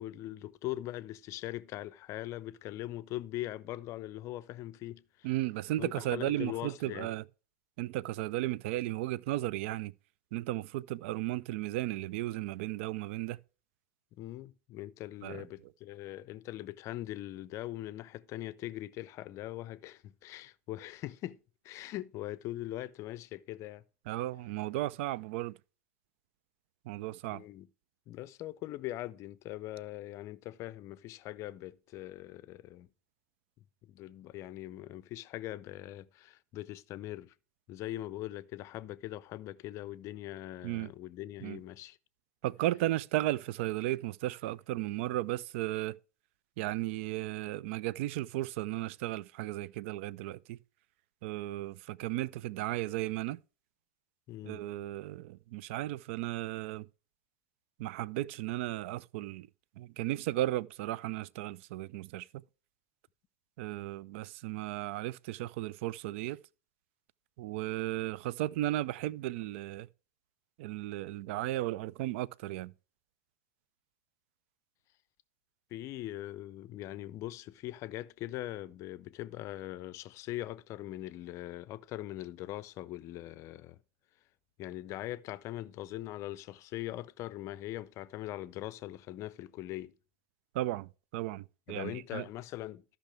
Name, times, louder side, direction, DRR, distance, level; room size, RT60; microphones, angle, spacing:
voice 1, 0.0-5.3 5.8-7.1 14.1-21.4 21.6-23.8 27.3-27.7 28.1-32.9 33.8-37.3 37.7-42.0 54.3-54.7 75.7-83.8 84.6-89.9 91.7-92.8, left 15 dB, 40° left, 0.5 m, -41 dB
voice 2, 5.2-7.2 7.8-9.9 10.3-13.4 15.2-15.5 24.1-25.6 26.9-27.4 40.6-40.9 41.4-41.6 42.4-46.0 46.6-50.6 51.2-53.4 54.4-56.9 57.8-59.5 59.8-62.3 63.6-66.4 67.4-69.9 70.6-72.7 90.5-92.2, right 15 dB, 60° right, 0.4 m, -35 dB
13.0 x 5.7 x 3.3 m
hypercardioid pair, 90°, 8 cm